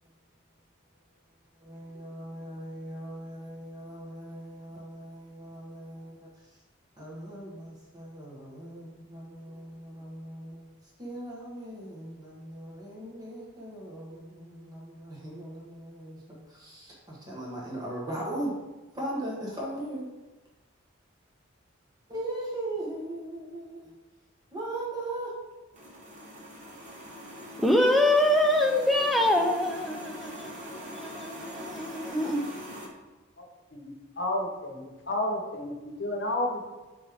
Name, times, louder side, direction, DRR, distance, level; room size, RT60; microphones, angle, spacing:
voice 1, 1.5-6.6 7.0-18.6 18.9-20.1 22.1-23.9 24.5-25.3, right 1 dB, 20° right, 1.3 m, -39 dB
sound 1, 25.7-32.9, equal, 35° right, 1.2 m, -42 dB
voice 2, 27.6-32.4, left 1 dB, ahead, 0.5 m, -25 dB
voice 3, 33.7-36.6, left 1 dB, 55° left, 1.1 m, -31 dB
9.1 x 3.5 x 3.6 m
head